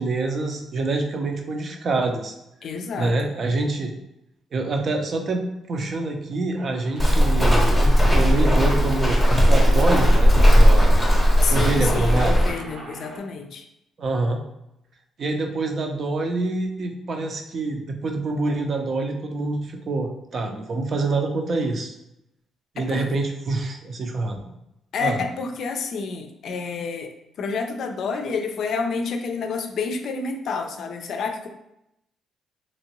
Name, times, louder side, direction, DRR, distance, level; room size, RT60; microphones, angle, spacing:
voice 1, 0.0-2.3 3.0-3.9 4.5-11.1 11.5-12.4 14.0-14.4 15.2-21.9 22.7-24.5 25.0-25.2, right 3 dB, 50° right, 4 dB, 0.5 m, -26 dB
voice 2, 2.6-3.3 11.4-13.6 22.8-23.1 24.9-27.1 27.4-31.5, left 4 dB, 65° left, 5 dB, 0.4 m, -29 dB
Aircraft, 6.5-13.2, right 1 dB, 90° right, 1.2 m, -39 dB
Walk footsteps, 7.0-12.5, equal, 5° left, 0.8 m, -17 dB
3.0 x 2.6 x 2.9 m, 0.85 s
cardioid pair, 90°, 0 cm